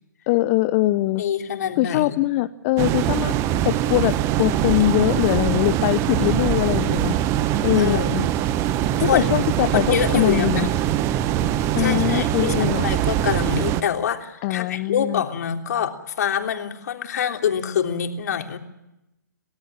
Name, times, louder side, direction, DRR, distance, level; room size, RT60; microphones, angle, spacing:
voice 1, 0.3-1.2 1.8-3.3 3.6-4.1 4.4-7.1 7.6-8.2 9.0-10.7 11.7-12.9 14.4-15.2, left 17 dB, 35° left, 11 dB, 0.9 m, -22 dB
voice 2, 1.2-2.2 7.7-8.2 9.1-9.3 9.7-10.7 11.8-18.6, left 8 dB, 55° left, 5 dB, 3.3 m, -25 dB
sound 1, 2.8-13.8, right 12 dB, 25° right, 1.2 m, -22 dB
29.0 x 18.0 x 8.8 m, 0.91 s
hypercardioid pair, 130°, 11 cm